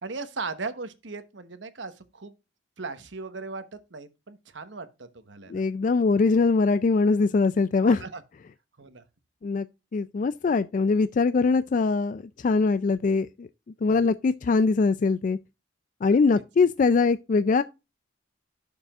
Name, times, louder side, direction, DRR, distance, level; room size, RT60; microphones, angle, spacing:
voice 1, 0.0-2.3 2.8-5.6 7.8-8.2 8.8-9.0 16.0-16.2, right 4 dB, 75° right, 1.0 m, -38 dB
voice 2, 5.5-8.0 9.4-9.7 9.9-13.5 13.8-15.4 16.0-17.6, left 4 dB, 45° left, 0.3 m, -22 dB
11.5 x 6.6 x 2.4 m
head